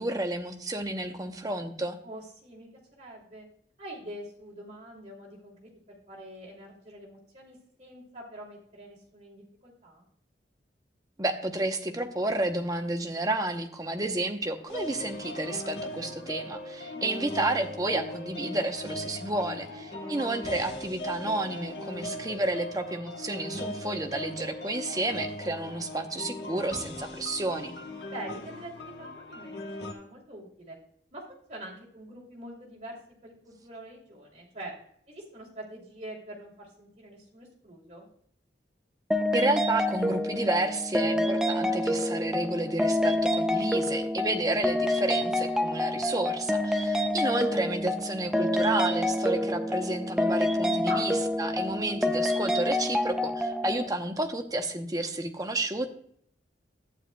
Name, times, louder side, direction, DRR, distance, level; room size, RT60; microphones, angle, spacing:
voice 1, 0.0-2.0 11.2-27.7 39.3-55.9, right 2 dB, 20° right, 5 dB, 0.7 m, -31 dB
voice 2, 2.0-2.7 3.0-3.5 3.8-10.0 16.9-17.2 19.7-20.2 28.1-30.8 31.1-33.0 33.2-34.7 35.1-38.1 50.8-51.1, right 1 dB, 35° right, -2 dB, 2.6 m, -44 dB
sound 1, 14.7-29.9, left 1 dB, 65° left, 1.2 m, -39 dB
sound 2, 39.1-53.9, left 1 dB, 5° right, 0.4 m, -27 dB
11.5 x 9.3 x 2.2 m, 0.65 s
head